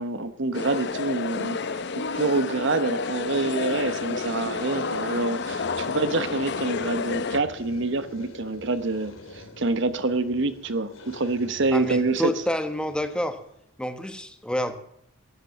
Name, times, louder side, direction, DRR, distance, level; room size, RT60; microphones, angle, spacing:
voice 1, 0.0-12.3, right 3 dB, 65° right, 11 dB, 1.0 m, -27 dB
sound 1, 0.5-7.4, left 4 dB, 60° left, 0.7 m, -30 dB
sound 2, 3.2-13.7, left 1 dB, 85° left, 3.0 m, -45 dB
voice 2, 11.7-13.4 13.8-14.8, left 1 dB, 5° left, 8 dB, 1.2 m, -28 dB
13.5 x 10.0 x 7.2 m, 0.71 s
head